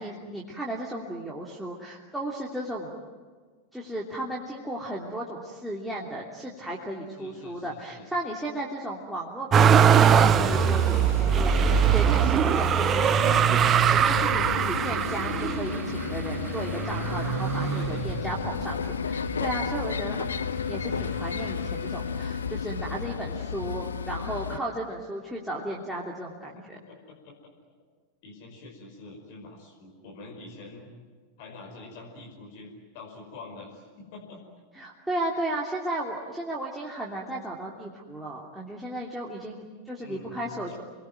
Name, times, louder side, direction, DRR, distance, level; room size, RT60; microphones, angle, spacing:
voice 1, 0.0-2.9 3.7-20.4 20.7-26.8 34.8-40.7, right 1 dB, ahead, -5 dB, 3.1 m, -35 dB
voice 2, 7.2-8.1 17.7-18.3 23.4-23.5 26.4-27.5 28.2-30.9 31.4-34.4 40.0-40.8, left 3 dB, 50° left, 1 dB, 5.4 m, -46 dB
Motor vehicle (road), 9.5-18.6 19.2-20.1 20.3-21.4 22.5-22.6, right 8 dB, 25° right, 0.8 m, -22 dB
sound 1, 10.1-24.6, left 7 dB, 70° left, 0.8 m, -33 dB
29.5 x 22.0 x 9.2 m, 1.5 s
figure-of-eight pair, 90°, 0 cm